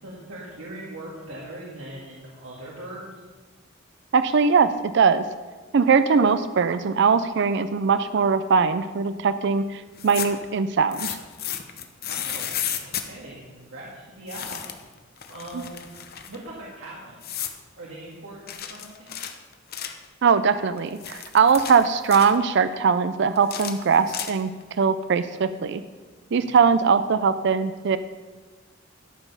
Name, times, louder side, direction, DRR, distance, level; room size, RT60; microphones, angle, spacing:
voice 1, 0.0-3.2 12.0-14.7 15.3-15.8 16.3-17.4 17.8-19.2 26.4-26.6, right 1 dB, 85° right, -5 dB, 2.1 m, -40 dB
voice 2, 4.1-5.3 5.7-11.2 20.2-24.5 24.8-25.8 26.3-28.0, right 5 dB, 60° right, 12 dB, 0.5 m, -21 dB
sound 1, 9.9-10.5 10.9-13.1 14.3-14.9 15.2-16.4 17.2-17.6 18.5-20.1 20.8-22.4 23.4-24.6, left 9 dB, 50° left, 0.9 m, -33 dB
13.0 x 7.1 x 5.6 m, 1.4 s
head